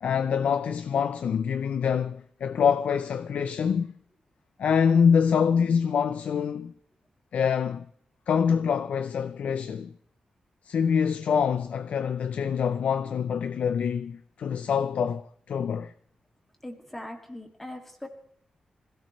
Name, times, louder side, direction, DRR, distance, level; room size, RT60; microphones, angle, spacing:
voice 1, 0.0-3.9 4.6-6.7 7.3-7.9 8.3-9.9 10.6-15.9, left 7 dB, 75° left, 0.6 m, -25 dB
voice 2, 16.6-18.1, left 1 dB, 10° left, 2.4 m, -40 dB
26.0 x 17.0 x 3.2 m
wide cardioid pair, 175°, 2 cm